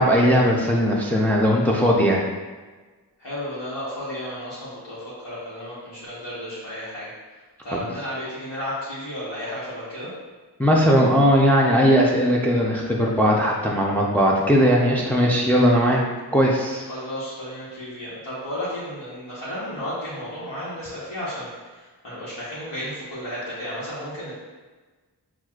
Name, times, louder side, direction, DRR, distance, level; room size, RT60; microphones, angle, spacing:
voice 1, 0.0-2.2 7.7-7.8 10.6-16.0 16.3-16.8, equal, 5° left, -2 dB, 0.5 m, -18 dB
voice 2, 3.2-7.1 7.6-10.1 16.9-24.3, equal, 80° left, -10 dB, 1.2 m, -33 dB
5.9 x 2.4 x 2.4 m, 1.3 s
wide cardioid pair, 45°, 41 cm